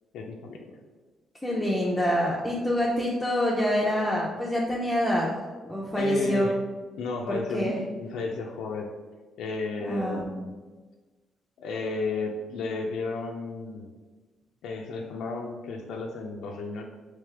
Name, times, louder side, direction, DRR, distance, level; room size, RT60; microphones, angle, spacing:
voice 1, 0.1-0.8 5.9-6.6 7.0-8.9 9.4-10.5 11.6-13.9 14.6-16.8, left 3 dB, 85° left, 1 dB, 0.4 m, -33 dB
voice 2, 1.4-5.4 5.7-6.5 7.3-7.8 9.8-10.2, equal, 5° left, -4 dB, 0.5 m, -26 dB
3.4 x 3.2 x 3.3 m, 1.3 s
cardioid pair, 90°, 0 cm